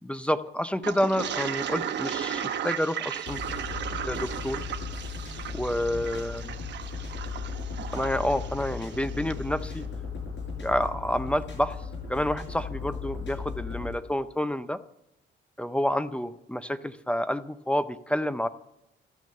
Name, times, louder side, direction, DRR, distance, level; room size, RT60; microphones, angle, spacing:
voice 1, 0.0-3.4 4.1-4.6 5.5-6.5 7.9-9.8 10.6-11.8 12.1-14.8 15.6-18.5, equal, 5° left, 14 dB, 0.5 m, -29 dB
Toilet flush, 0.8-9.4, right 9 dB, 60° right, 1.1 m, -35 dB
sound 1, 3.2-13.9, left 5 dB, 65° left, 6.2 m, -36 dB
13.5 x 6.3 x 7.6 m, 0.88 s
cardioid pair, 90°, 20 cm